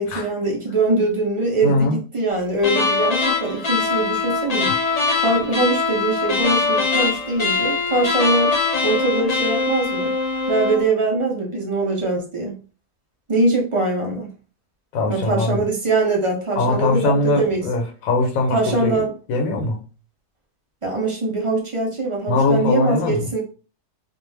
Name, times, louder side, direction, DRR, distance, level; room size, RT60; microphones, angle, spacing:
voice 1, 0.0-4.7 5.1-8.6 8.8-10.1 10.5-12.5 13.3-14.3 15.1-17.7 18.5-19.1 20.8-23.4, right 2 dB, 45° right, 0.4 m, -22 dB
voice 2, 1.6-2.0 14.9-15.6 16.6-19.0 19.3-19.8 22.3-23.3, left 2 dB, 90° left, 1.1 m, -21 dB
sound 1, 2.6-10.9, left 4 dB, 60° left, 0.4 m, -22 dB
2.5 x 2.1 x 3.1 m
omnidirectional pair, 1.4 m